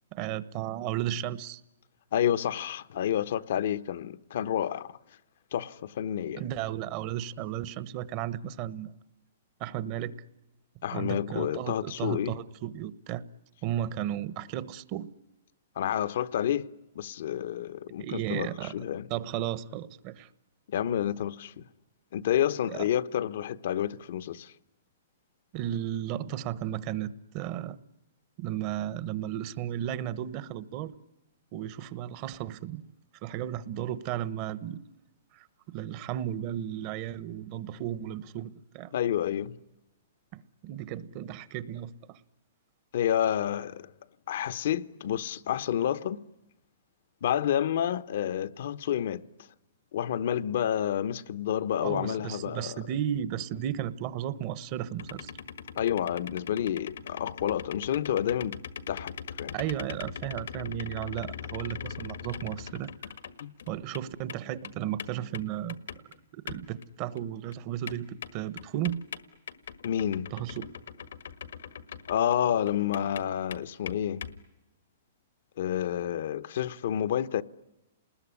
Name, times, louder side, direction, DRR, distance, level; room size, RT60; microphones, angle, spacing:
voice 1, 0.1-1.6 6.3-8.9 9.6-10.1 10.9-13.2 13.6-15.1 18.0-18.7 19.1-20.3 22.7-22.9 25.5-27.8 28.4-30.9 31.5-32.8 33.2-34.8 35.3-38.9 40.3-42.2 51.8-55.3 59.5-62.9 63.7-65.8 66.3-69.0 70.3-70.7, right 11 dB, 40° right, 1.1 m, -34 dB
voice 2, 2.1-5.0 5.5-6.4 10.8-12.4 15.8-19.1 20.7-21.7 22.1-24.5 38.9-39.6 42.9-43.9 44.3-46.2 47.2-49.2 49.9-52.8 55.7-58.6 58.9-59.6 63.4-63.5 69.8-70.3 72.1-74.3 75.6-77.4, left 10 dB, 65° left, 0.9 m, -29 dB
sound 1, 55.0-64.0 64.3-66.2 66.5-66.9 67.2-67.3 67.5-67.6 67.9-72.4 72.7-74.4, left 8 dB, 80° left, 1.6 m, -41 dB
29.0 x 20.5 x 9.8 m
hypercardioid pair, 145°, 0 cm